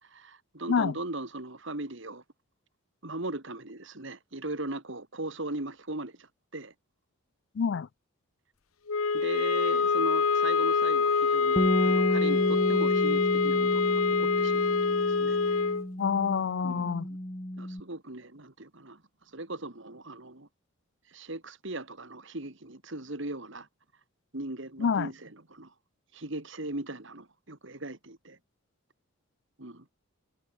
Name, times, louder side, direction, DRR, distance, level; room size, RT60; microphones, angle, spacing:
voice 1, 0.0-2.2 3.0-6.3 6.5-6.7 9.1-15.5 16.6-17.1 17.6-19.0 19.3-20.5 21.1-23.7 24.3-25.7 26.1-28.4 29.6-29.9, right 2 dB, 55° right, 2.1 m, -39 dB
voice 2, 7.6-7.9 16.0-17.1 24.8-25.1, left 6 dB, 55° left, 0.3 m, -27 dB
sound 1, 8.9-15.9, left 4 dB, 75° left, 0.9 m, -25 dB
Bass guitar, 11.6-17.8, equal, 20° left, 1.8 m, -32 dB
head